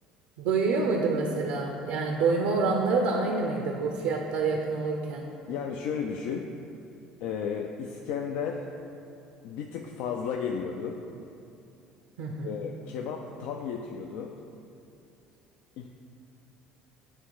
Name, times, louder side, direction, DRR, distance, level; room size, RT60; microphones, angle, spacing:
voice 1, 0.4-5.3 12.2-12.5, right 4 dB, 80° right, 1 dB, 0.6 m, -27 dB
voice 2, 5.5-6.5 7.2-8.7 9.4-11.0 12.4-14.4 15.8-15.9, left 6 dB, 70° left, 2 dB, 0.4 m, -33 dB
9.2 x 3.1 x 4.7 m, 2.7 s
supercardioid pair, 75°, 2 cm